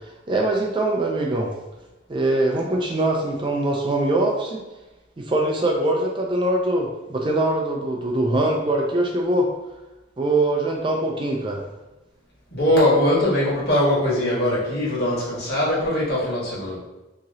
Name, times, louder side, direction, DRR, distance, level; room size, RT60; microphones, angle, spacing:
voice 1, 0.3-1.5 2.1-4.6 5.2-9.5 10.2-11.6, right 1 dB, 25° right, 0 dB, 0.4 m, -22 dB
voice 2, 12.5-16.8, left 1 dB, 55° left, -6 dB, 1.3 m, -21 dB
2.9 x 2.8 x 3.8 m, 1.0 s
head